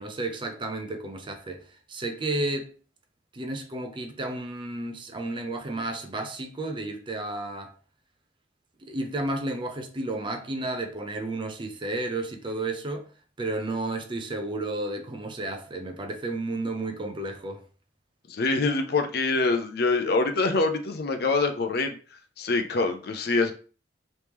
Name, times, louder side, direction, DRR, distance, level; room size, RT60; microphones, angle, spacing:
voice 1, 0.0-2.7 3.3-7.7 8.8-13.1 13.4-17.6, right 2 dB, 25° right, 0.5 m, -32 dB
voice 2, 18.3-22.0 22.4-23.5, left 3 dB, 60° left, 0.5 m, -25 dB
3.1 x 2.9 x 3.4 m
head